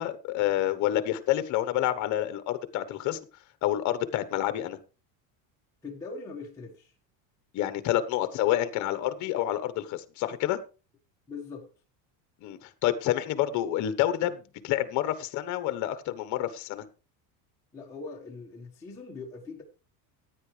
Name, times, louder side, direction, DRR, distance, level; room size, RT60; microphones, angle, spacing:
voice 1, 0.0-3.2 3.6-4.8 7.5-10.6 12.4-16.8, left 13 dB, 45° left, 1.1 m, -28 dB
voice 2, 5.8-6.9 11.3-11.7 17.7-19.6, left 4 dB, 5° left, 1.4 m, -41 dB
15.0 x 9.4 x 3.3 m
cardioid pair, 175°, 42 cm